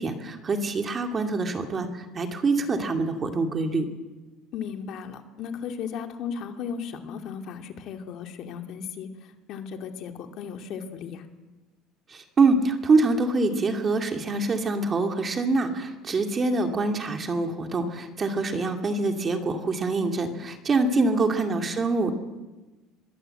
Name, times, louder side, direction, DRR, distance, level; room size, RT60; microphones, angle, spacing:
voice 1, 0.0-3.9 12.1-22.1, right 3 dB, 25° right, 5 dB, 2.3 m, -25 dB
voice 2, 4.5-11.2 21.1-21.4, left 7 dB, 50° left, 5 dB, 2.5 m, -36 dB
24.5 x 21.5 x 7.8 m, 1.2 s
cardioid pair, 155°, 0 cm